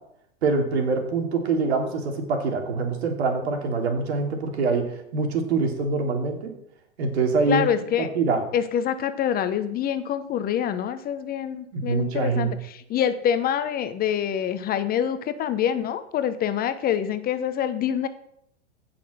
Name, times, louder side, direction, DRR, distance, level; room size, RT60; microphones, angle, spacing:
voice 1, 0.4-6.5 7.0-7.7 8.0-8.4 11.7-12.5, right 4 dB, 65° right, 3 dB, 3.1 m, -24 dB
voice 2, 7.5-8.1 8.5-18.1, left 9 dB, 25° left, 11 dB, 0.8 m, -26 dB
16.0 x 6.1 x 6.4 m, 0.77 s
hypercardioid pair, 105°, 34 cm